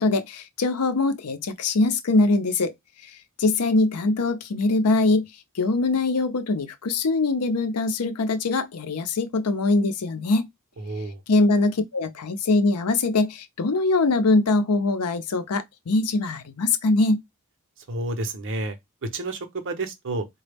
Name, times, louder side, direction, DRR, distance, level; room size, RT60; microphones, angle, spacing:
voice 1, 0.0-2.7 3.0-3.1 3.4-5.3 5.5-10.5 11.3-17.2, left 3 dB, 85° left, 0.6 m, -22 dB
voice 2, 10.8-11.2 17.9-20.3, right 2 dB, 60° right, 0.7 m, -30 dB
4.0 x 2.2 x 3.4 m
head